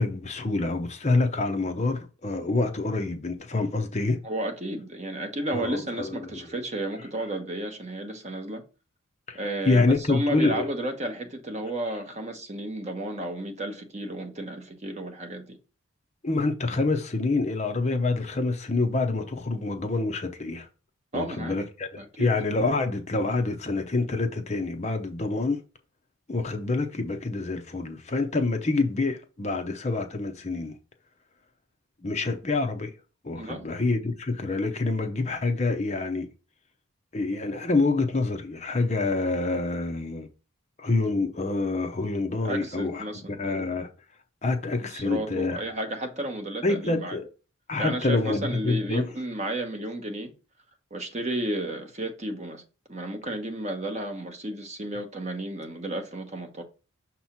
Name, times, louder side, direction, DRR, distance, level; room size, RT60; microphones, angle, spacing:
voice 1, 0.0-4.2 5.5-6.4 9.3-10.7 16.2-20.7 21.1-25.6 26.3-30.7 32.0-32.9 33.2-36.3 37.1-40.3 40.8-43.9 44.4-45.6 46.6-47.3 47.7-49.1, left 3 dB, 30° left, 0.6 m, -27 dB
voice 2, 4.2-8.6 9.3-15.6 21.1-21.6 22.0-22.3 33.3-33.6 42.4-43.5 44.8-47.2 47.8-50.3 50.9-52.6 52.9-56.6, right 1 dB, 30° right, 1.0 m, -32 dB
6.4 x 2.9 x 5.8 m
head